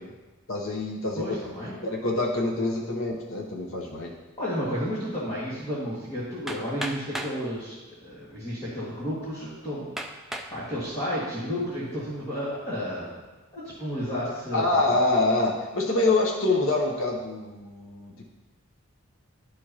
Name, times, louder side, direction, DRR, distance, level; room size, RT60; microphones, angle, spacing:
voice 1, 0.5-1.2 1.8-4.1 14.5-18.2, left 2 dB, 65° left, -1 dB, 0.8 m, -25 dB
voice 2, 1.2-1.8 4.4-9.9 10.5-13.2 13.5-14.9, equal, 25° left, -11 dB, 1.8 m, -32 dB
Hammer, 6.5-7.4 8.3-8.4 9.0-9.1 10.0-10.6 11.1-11.6, right 1 dB, ahead, 0.3 m, -35 dB
12.0 x 4.8 x 2.9 m, 1.2 s
head